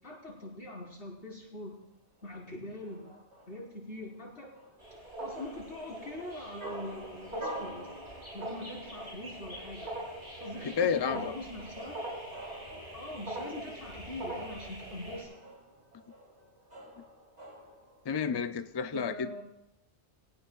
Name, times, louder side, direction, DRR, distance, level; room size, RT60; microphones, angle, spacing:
voice 1, 0.0-1.8 2.2-4.5 5.2-7.9 8.3-10.0 10.4-12.0 12.9-15.3 18.3-18.5 18.9-19.4, left 1 dB, 85° left, -5 dB, 4.7 m, -43 dB
sound 1, 1.7-18.1, right 1 dB, 85° right, 3.2 m, -49 dB
sound 2, 4.8-15.2, right 1 dB, 50° right, 6.4 m, -42 dB
voice 2, 10.8-11.3 18.1-19.4, left 6 dB, 45° left, 10 dB, 0.3 m, -30 dB
21.0 x 17.5 x 2.4 m, 0.87 s
omnidirectional pair, 1.2 m